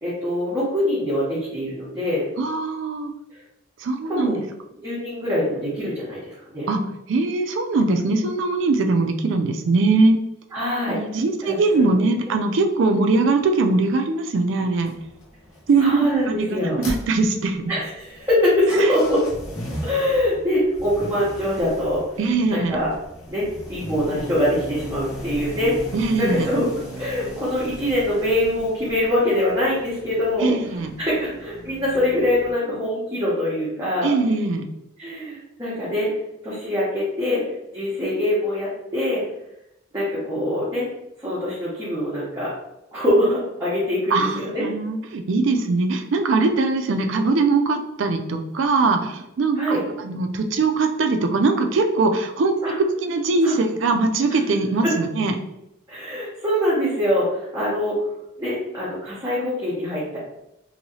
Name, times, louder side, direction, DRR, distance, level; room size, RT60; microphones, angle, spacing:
voice 1, 0.0-2.3 3.3-3.4 4.1-4.5 4.8-6.7 10.5-11.0 11.5-11.9 15.8-16.8 17.7-19.2 19.8-22.0 22.5-22.9 23.3-25.8 26.2-26.7 27.0-30.5 31.0-34.1 35.0-36.1 36.4-37.4 37.7-39.2 39.9-40.8 41.2-42.5 42.9-44.6 49.6-49.8 52.6-52.7 53.4-53.6 54.8-54.9 55.9-58.0 58.4-60.2, left 1 dB, 15° right, -10 dB, 0.8 m, -23 dB
voice 2, 2.4-3.1 3.8-4.4 6.7-6.8 7.1-10.2 10.9-14.9 15.7-17.6 18.8-19.0 22.2-22.8 25.9-26.5 30.4-30.9 34.0-34.7 44.1-52.6 53.0-55.3, right 3 dB, 65° right, 5 dB, 0.4 m, -21 dB
sound 1, 14.7-32.5, equal, 85° left, 0.9 m, -37 dB
3.0 x 2.7 x 2.7 m, 0.88 s
head